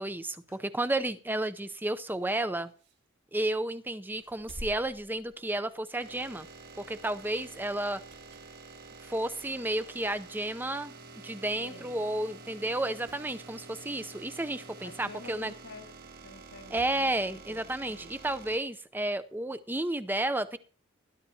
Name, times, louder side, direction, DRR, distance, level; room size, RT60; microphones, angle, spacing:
voice 1, 0.0-2.7 3.3-6.5 6.8-8.0 9.0-10.9 11.2-15.5 16.7-20.6, right 1 dB, 10° right, 11 dB, 0.6 m, -32 dB
sound 1, 1.7-3.6 4.0-5.9 6.3-6.5 7.8-8.6 9.1-9.2 10.1-10.2 10.4-10.5 10.7-10.8 11.6-11.8 12.1-12.2 12.6-13.3 15.2-15.3 16.3-17.1 18.4-18.5, equal, 65° right, 4.9 m, -51 dB
sound 2, 5.1-18.6, right 4 dB, 50° right, 2.6 m, -49 dB
voice 2, 11.6-12.0 14.8-18.1, left 3 dB, 85° left, 5 dB, 2.0 m, -50 dB
20.0 x 11.5 x 2.8 m, 0.40 s
head